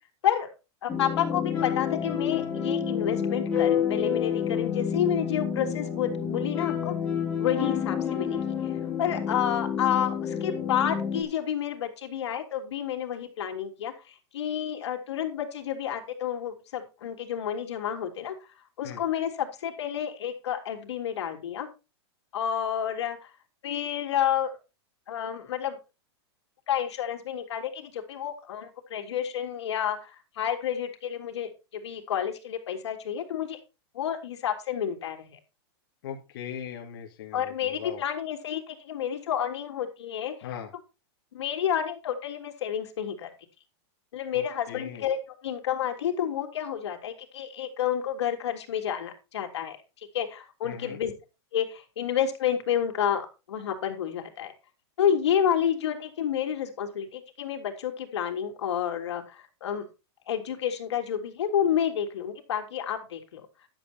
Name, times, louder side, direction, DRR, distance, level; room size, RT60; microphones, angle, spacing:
voice 1, 0.8-6.9 7.4-8.7 9.0-18.3 18.8-21.7 22.3-23.3 23.6-24.6 25.1-25.8 26.7-33.6 33.9-35.4 37.3-40.3 41.3-43.3 44.1-49.8 50.1-51.1 51.5-54.5 55.0-59.8 60.3-63.5, left 9 dB, 80° left, 4 dB, 3.4 m, -30 dB
sound 1, 0.9-11.2, left 8 dB, 10° left, 3.3 m, -29 dB
voice 2, 36.0-38.0 40.4-40.7 44.3-44.4 44.7-45.1 50.6-51.0, left 9 dB, 50° left, -1 dB, 2.4 m, -39 dB
12.0 x 7.7 x 4.5 m, 0.29 s
supercardioid pair, 175°, 14 cm